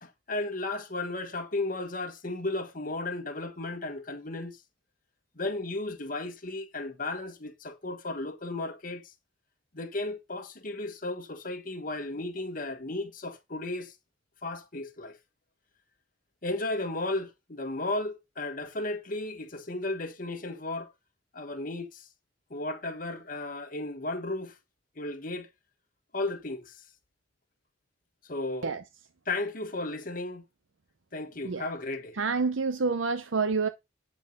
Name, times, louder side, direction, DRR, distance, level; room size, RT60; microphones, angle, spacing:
voice 1, 0.0-4.6 5.3-9.0 9.7-13.9 14.4-15.2 16.4-20.9 21.3-22.1 22.5-24.6 25.0-25.5 26.1-26.8 28.2-28.7 29.3-30.4 31.1-32.2, left 2 dB, 45° left, 1.5 m, -34 dB
voice 2, 32.2-33.7, right 4 dB, 85° right, 0.8 m, -28 dB
10.5 x 4.6 x 5.4 m
head